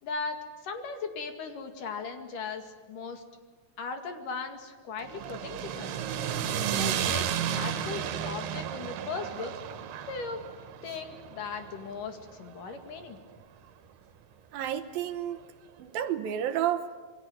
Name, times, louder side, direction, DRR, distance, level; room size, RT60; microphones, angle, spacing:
voice 1, 0.0-3.2 3.8-6.0 6.7-9.5 10.1-10.4 10.8-13.2, left 4 dB, 60° left, 6 dB, 3.6 m, -38 dB
sound 1, 5.0-13.2, right 9 dB, 90° right, 3.5 m, -33 dB
voice 2, 14.5-15.4 15.8-17.0, right 10 dB, 70° right, 9 dB, 2.8 m, -31 dB
27.5 x 23.0 x 9.1 m, 1.4 s
omnidirectional pair, 4.4 m